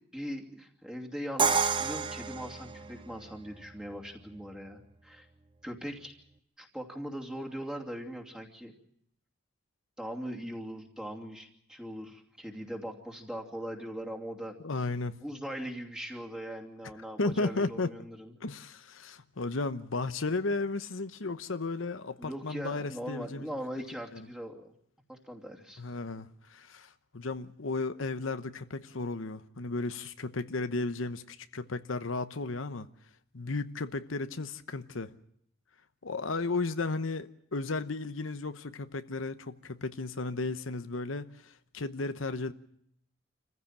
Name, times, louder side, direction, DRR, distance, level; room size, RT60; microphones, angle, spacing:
voice 1, 0.1-5.3 5.6-6.2 6.6-8.7 10.0-14.6 15.2-18.3 22.2-24.7 25.1-25.8, equal, 5° right, 2.8 m, -40 dB
Crash cymbal, 1.4-3.3, right 5 dB, 25° right, 1.0 m, -29 dB
voice 2, 14.6-15.2 17.2-17.9 18.4-23.5 24.1-24.3 25.8-32.9 33.3-35.1 36.0-42.5, left 3 dB, 80° left, 1.0 m, -34 dB
27.0 x 15.5 x 8.9 m
head